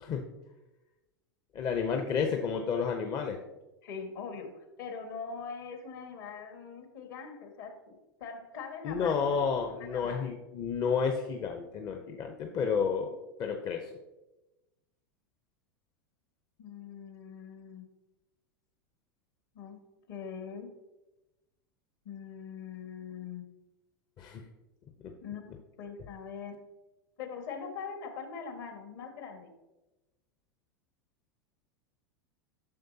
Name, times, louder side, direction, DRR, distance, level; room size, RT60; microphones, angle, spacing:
voice 1, 1.5-3.4 8.8-13.9 24.2-24.4 25.0-25.1, left 6 dB, 35° left, 4 dB, 0.8 m, -31 dB
voice 2, 3.8-9.4 9.7-10.3 16.6-17.9 19.6-19.8 20.1-20.7 22.1-23.4 25.2-25.4 25.8-26.6 27.2-29.5, left 6 dB, 60° left, 4 dB, 1.7 m, -42 dB
10.5 x 6.5 x 2.8 m, 1.0 s
hypercardioid pair, 90°, 12 cm